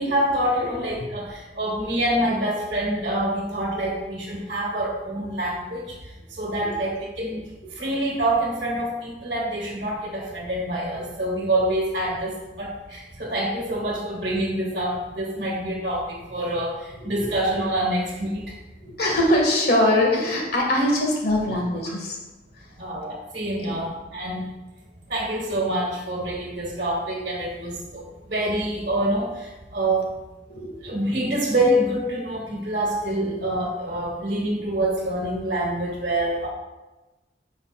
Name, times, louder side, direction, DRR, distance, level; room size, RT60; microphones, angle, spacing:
voice 1, 0.0-5.8 6.4-7.4 7.8-18.4 22.8-24.5 25.1-30.1 30.8-36.5, right 1 dB, 50° right, -3 dB, 1.3 m, -26 dB
voice 2, 17.0-17.3 18.8-22.2 23.6-23.7 30.5-30.9, left 1 dB, 60° left, -1 dB, 1.8 m, -22 dB
9.8 x 5.6 x 2.5 m, 1.1 s
head